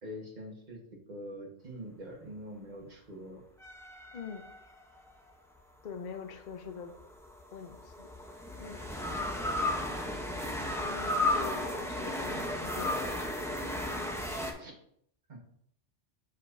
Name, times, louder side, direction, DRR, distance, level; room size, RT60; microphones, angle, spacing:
voice 1, 0.0-0.8 1.1-3.4 9.4-9.6 14.6-14.7 15.3-15.4, equal, 40° right, -1 dB, 1.4 m, -44 dB
sound 1, 3.6-5.1 7.0-14.5, left 1 dB, 5° left, 0.6 m, -34 dB
voice 2, 4.1-4.4 5.8-6.9 7.5-8.1 8.6-8.8 10.6-13.0, left 6 dB, 50° left, 5 dB, 0.6 m, -43 dB
7.4 x 5.2 x 2.6 m, 0.69 s
omnidirectional pair, 1.3 m